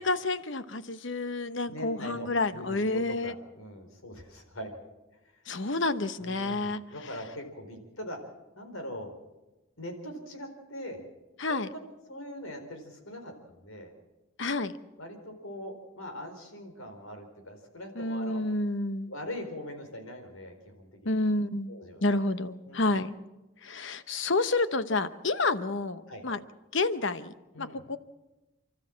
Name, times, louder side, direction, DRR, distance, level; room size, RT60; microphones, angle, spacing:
voice 1, 0.0-3.3 5.5-6.8 11.4-11.7 14.4-14.8 17.9-19.1 21.0-23.1 23.6-26.4 26.7-28.0, left 2 dB, 60° left, 12 dB, 1.0 m, -29 dB
voice 2, 1.7-4.8 6.2-8.2 8.6-9.1 9.8-11.0 11.5-11.6 12.1-13.9 15.0-18.4 19.1-21.1 21.7-22.2 22.7-22.9 26.1-26.2 27.5-27.8, left 1 dB, 75° left, 5 dB, 4.4 m, -42 dB
29.5 x 13.0 x 7.5 m, 1.1 s
head